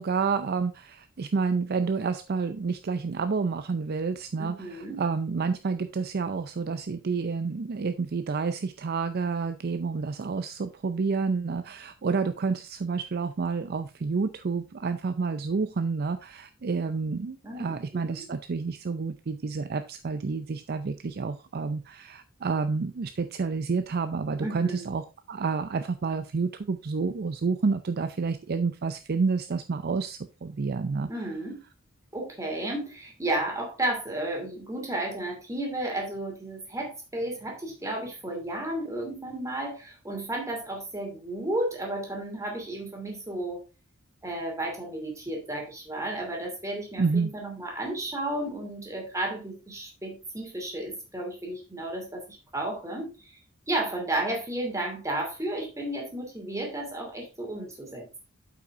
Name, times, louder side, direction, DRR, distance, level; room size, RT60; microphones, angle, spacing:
voice 1, 0.0-31.1 47.0-47.3, right 4 dB, 50° right, 10 dB, 0.5 m, -29 dB
voice 2, 4.4-5.0 17.4-18.3 24.4-24.8 31.1-31.6 32.1-43.6 44.2-53.4 53.7-58.2, right 1 dB, 15° right, 0 dB, 2.7 m, -33 dB
8.2 x 5.7 x 3.6 m, 0.30 s
head